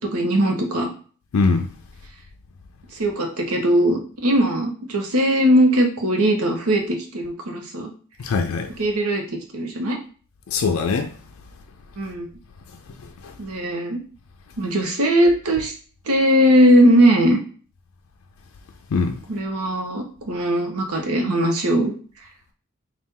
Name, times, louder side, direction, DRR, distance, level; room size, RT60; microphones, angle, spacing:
voice 1, 0.1-0.9 2.9-7.9 8.8-10.0 12.0-12.3 13.4-14.0 14.6-15.7 16.1-17.4 19.3-21.9, equal, 85° right, 1.0 m, -19 dB
voice 2, 1.3-1.7 8.2-8.7 10.5-11.1 13.0-13.3 18.9-19.2, left 4 dB, 65° left, 0.4 m, -22 dB
4.2 x 2.4 x 3.7 m
head